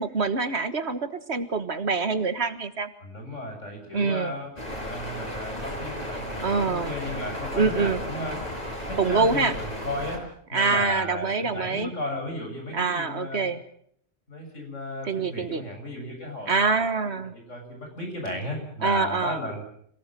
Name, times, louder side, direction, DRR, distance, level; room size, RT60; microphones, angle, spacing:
voice 1, 0.0-2.9 3.9-4.3 6.4-6.9 7.5-8.0 9.0-9.5 10.5-11.9 12.7-13.6 15.1-15.6 16.5-17.3 18.8-19.4, right 4 dB, 60° right, 11 dB, 1.7 m, -25 dB
voice 2, 3.0-13.5 14.3-19.6, left 1 dB, 75° left, 2 dB, 7.8 m, -35 dB
sound 1, 4.6-10.2, equal, 30° left, 7.0 m, -34 dB
27.0 x 18.5 x 7.6 m, 0.67 s
omnidirectional pair, 1.3 m